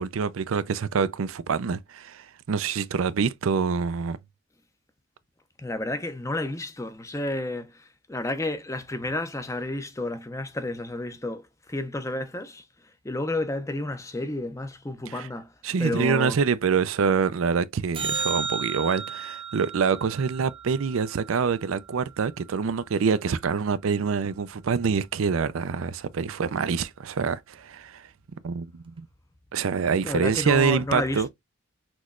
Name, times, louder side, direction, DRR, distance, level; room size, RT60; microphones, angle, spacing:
voice 1, 0.0-4.2 15.1-15.3 15.6-28.1 28.4-29.1 29.5-31.3, right 5 dB, 85° right, 0.5 m, -26 dB
voice 2, 5.6-15.5 15.8-16.4 30.0-31.3, left 1 dB, 15° left, 0.6 m, -31 dB
sound 1, 17.9-22.4 29.0-29.1, right 5 dB, 25° right, 0.6 m, -34 dB
6.1 x 3.1 x 2.4 m
head